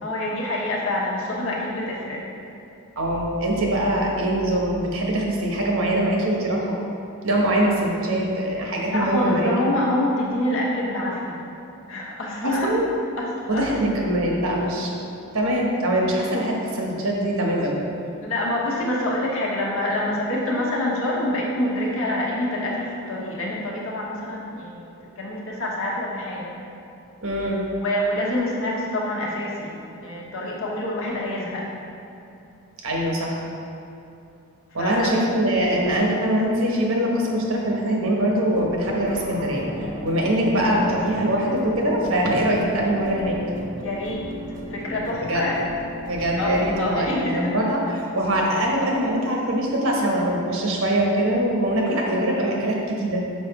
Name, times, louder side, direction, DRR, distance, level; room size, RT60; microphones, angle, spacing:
voice 1, 0.0-2.2 8.9-11.4 11.9-12.9 13.2-13.8 18.2-24.9 25.2-26.5 27.8-31.6 34.8-35.2 43.8-44.3 44.7-45.6 46.4-47.5, left 1 dB, 60° left, -3 dB, 1.1 m, -26 dB
voice 2, 3.0-6.8 7.2-9.5 12.4-12.8 13.5-15.0 15.3-17.8 27.2-27.6 32.8-33.4 34.7-43.4 45.1-45.5 46.1-53.2, right 1 dB, 60° right, -1 dB, 1.1 m, -23 dB
sound 1, 38.5-46.9, left 1 dB, 35° right, 0.6 m, -35 dB
5.6 x 5.2 x 4.0 m, 2.7 s
head